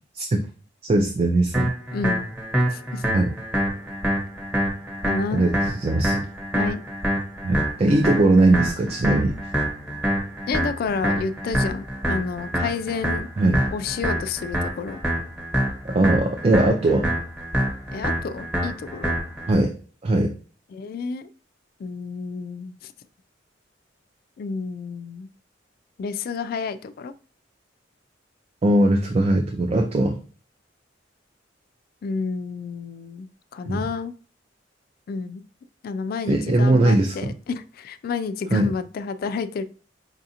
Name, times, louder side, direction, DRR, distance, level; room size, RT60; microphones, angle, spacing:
voice 1, 0.1-0.4 0.8-1.7 3.1-3.3 5.3-6.2 7.4-9.4 13.4-13.6 15.9-17.2 19.5-19.7 20.0-20.4 28.6-30.2 33.7-33.8 36.3-37.3 38.5-38.7, right 2 dB, 35° right, 3 dB, 0.4 m, -20 dB
sound 1, 1.5-19.5, equal, 5° right, 1.1 m, -26 dB
voice 2, 1.9-2.2 2.7-3.2 5.0-5.4 6.5-6.8 10.5-13.3 13.7-15.0 17.9-19.2 20.7-21.3 21.8-22.9 24.4-25.3 26.0-27.1 32.0-33.3 33.5-34.1 35.1-35.4 35.8-39.6, left 5 dB, 55° left, 12 dB, 0.3 m, -30 dB
4.9 x 2.4 x 2.7 m, 0.41 s
head